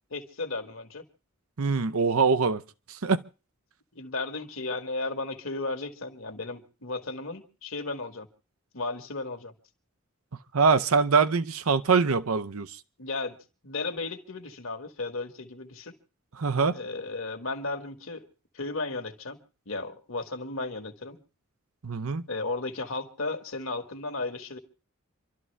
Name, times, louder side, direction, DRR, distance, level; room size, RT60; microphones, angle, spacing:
voice 1, 0.1-1.0 4.0-8.3 8.7-9.5 13.0-13.4 13.6-16.0 16.7-18.3 18.5-19.4 19.7-21.2 22.3-24.6, left 3 dB, 70° left, 1.8 m, -34 dB
voice 2, 1.6-2.6 2.9-3.2 10.5-12.8 16.4-16.8 21.8-22.2, right 5 dB, 80° right, 0.8 m, -23 dB
27.0 x 12.5 x 3.4 m
head